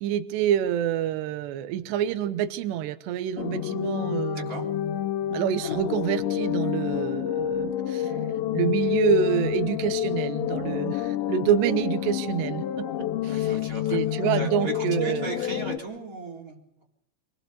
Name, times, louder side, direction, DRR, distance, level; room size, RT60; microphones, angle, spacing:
voice 1, 0.0-4.5 5.3-8.2 8.5-13.5 13.9-15.3, right 10 dB, 80° right, 10 dB, 3.0 m, -27 dB
sound 1, 3.4-15.8, left 11 dB, 85° left, 3.2 m, -28 dB
voice 2, 4.3-4.6 13.3-16.8, right 2 dB, 20° right, 0 dB, 3.6 m, -37 dB
28.0 x 17.5 x 6.8 m, 0.76 s
omnidirectional pair, 5.1 m